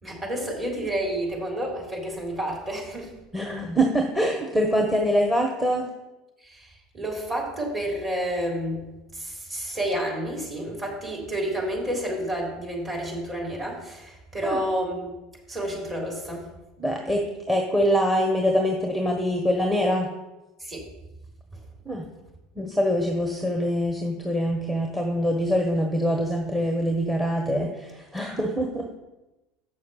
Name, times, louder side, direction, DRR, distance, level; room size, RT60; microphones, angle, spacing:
voice 1, 0.0-3.1 6.4-8.9 9.1-15.2 15.5-16.5 20.6-20.8 21.5-21.6, right 1 dB, 25° right, -2 dB, 3.6 m, -30 dB
voice 2, 3.3-5.8 14.4-14.6 16.8-20.1 21.8-22.1 22.6-28.9, equal, 10° right, 2 dB, 1.3 m, -24 dB
7.5 x 6.4 x 5.7 m, 1.0 s
figure-of-eight pair, 75°, 0 cm